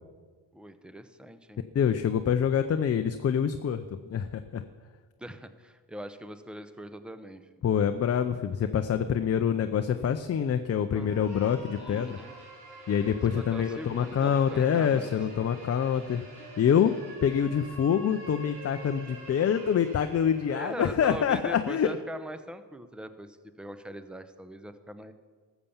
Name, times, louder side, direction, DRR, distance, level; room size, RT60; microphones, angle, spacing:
voice 1, 0.5-1.6 5.2-7.5 10.9-11.1 11.8-12.4 13.3-15.1 20.5-25.1, right 1 dB, ahead, 10 dB, 0.7 m, -41 dB
voice 2, 1.7-4.6 7.6-12.2 12.9-16.2 16.6-16.9 17.2-22.0, left 8 dB, 35° left, 8 dB, 0.5 m, -26 dB
sound 1, 10.9-20.8, right 1 dB, 60° right, 4.0 m, -47 dB
13.0 x 7.1 x 7.1 m, 1.5 s
cardioid pair, 95°, 45 cm